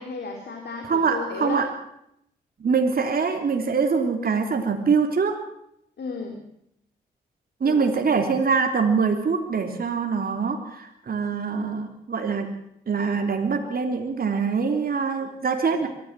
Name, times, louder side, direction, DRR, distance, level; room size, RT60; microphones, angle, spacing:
voice 1, 0.0-1.7 6.0-6.4 7.6-7.9, left 4 dB, 60° left, 2 dB, 3.7 m, -33 dB
voice 2, 0.8-1.7 2.6-5.4 7.6-12.5 12.9-15.9, right 5 dB, 50° right, 4 dB, 3.1 m, -24 dB
23.5 x 15.0 x 7.5 m, 0.76 s
hypercardioid pair, 45°, 19 cm